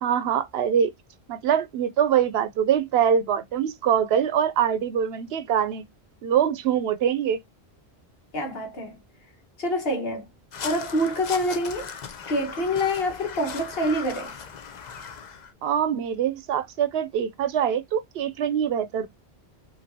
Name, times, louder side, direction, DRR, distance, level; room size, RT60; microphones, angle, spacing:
voice 1, 0.0-0.9 1.3-5.8 6.2-7.4 15.6-19.1, right 8 dB, 75° right, 0.8 m, -24 dB
voice 2, 8.3-9.0 9.6-10.3 10.6-11.9 12.3-14.3, left 1 dB, 65° left, 1.5 m, -26 dB
Crow, 10.5-15.5, left 6 dB, 50° left, 0.6 m, -38 dB
5.2 x 2.7 x 2.7 m
omnidirectional pair, 1.1 m